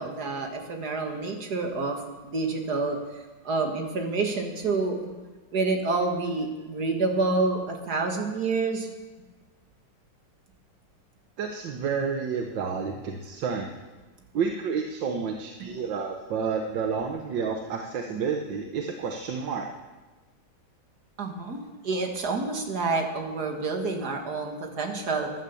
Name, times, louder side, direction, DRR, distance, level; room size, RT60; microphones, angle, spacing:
voice 1, 0.0-2.0 2.2-3.0 3.4-5.1 5.5-8.9 21.2-21.6 21.8-25.3, right 3 dB, 60° right, 3 dB, 2.3 m, -28 dB
voice 2, 11.4-13.7 14.3-19.7, right 6 dB, 80° right, 3 dB, 1.8 m, -30 dB
15.0 x 11.5 x 7.1 m, 1.2 s
omnidirectional pair, 2.0 m